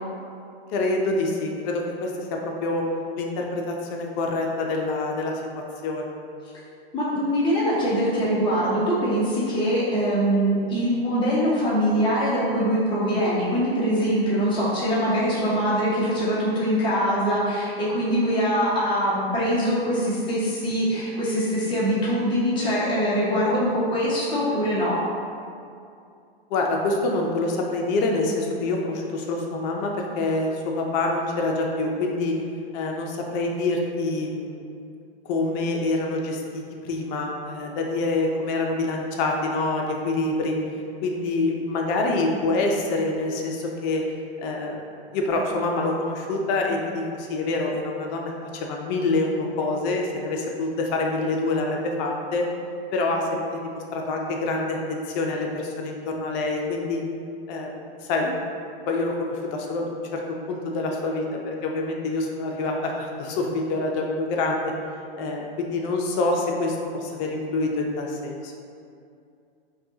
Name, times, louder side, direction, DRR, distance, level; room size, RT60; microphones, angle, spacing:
voice 1, 0.7-2.8 3.2-6.1 26.5-32.4 32.7-34.6 35.2-40.6 41.0-44.0 44.4-44.8 45.1-52.5 52.9-57.0 57.5-57.7 58.0-58.3 58.9-60.2 60.5-64.7 65.2-68.5, left 2 dB, 45° left, 1 dB, 0.6 m, -26 dB
voice 2, 6.9-25.0, equal, 15° left, -8 dB, 0.8 m, -23 dB
5.5 x 2.3 x 2.8 m, 2.4 s
hypercardioid pair, 115°, 31 cm